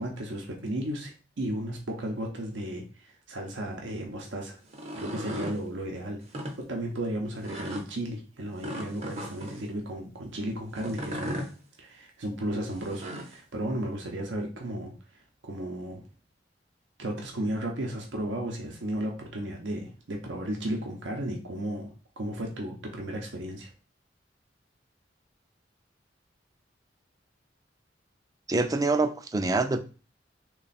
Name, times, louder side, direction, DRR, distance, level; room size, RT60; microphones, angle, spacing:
voice 1, 0.0-4.6 4.9-6.2 6.6-11.4 11.8-14.9 15.4-16.0 17.0-21.9 22.2-23.7, right 1 dB, 80° right, 1 dB, 0.7 m, -34 dB
sound 1, 4.6-5.6 6.2-6.5 7.4-7.8 8.6-9.6 10.8-11.5 12.7-13.4, equal, 35° right, 0.7 m, -36 dB
voice 2, 28.5-29.8, right 3 dB, 20° right, 8 dB, 0.3 m, -25 dB
3.3 x 2.3 x 4.0 m, 0.35 s
head